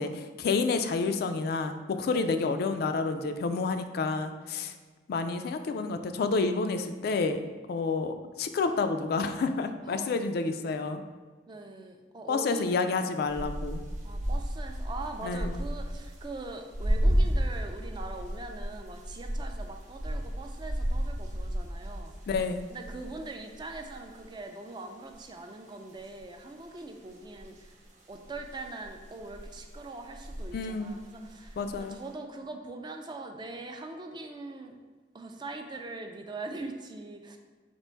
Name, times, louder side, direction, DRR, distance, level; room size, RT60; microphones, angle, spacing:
voice 1, 0.0-4.7 5.1-7.4 7.7-11.0 12.3-13.8 15.2-15.5 22.3-22.6 30.5-31.0 31.6-32.0, left 4 dB, 60° left, 8 dB, 0.3 m, -29 dB
voice 2, 2.1-2.5 9.8-10.2 11.5-12.7 14.0-22.1 22.7-27.8 28.1-34.8 35.1-37.4, right 2 dB, 25° right, 4 dB, 0.4 m, -42 dB
sound 1, 13.3-24.2 25.1-25.2 26.0-26.2 27.4-27.7 28.2-30.6 30.9-31.9, equal, 40° right, 0.8 m, -32 dB
4.4 x 2.5 x 4.4 m, 1.4 s
head